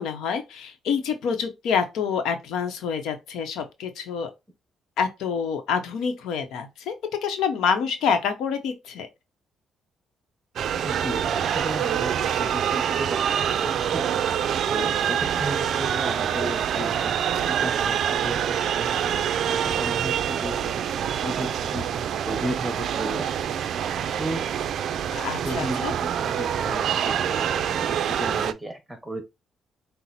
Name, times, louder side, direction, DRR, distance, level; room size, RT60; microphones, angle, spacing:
voice 1, 0.0-4.3 5.0-6.9 7.2-9.1 25.2-25.9, left 6 dB, 85° left, 0.8 m, -27 dB
sound 1, 10.6-28.5, right 9 dB, 70° right, 0.3 m, -26 dB
voice 2, 10.8-14.0 14.7-17.1 17.5-19.4 19.7-23.3 24.2-24.5 25.1-29.2, right 1 dB, 10° right, 1.3 m, -34 dB
5.5 x 2.0 x 4.1 m
cardioid pair, 90°, 0 cm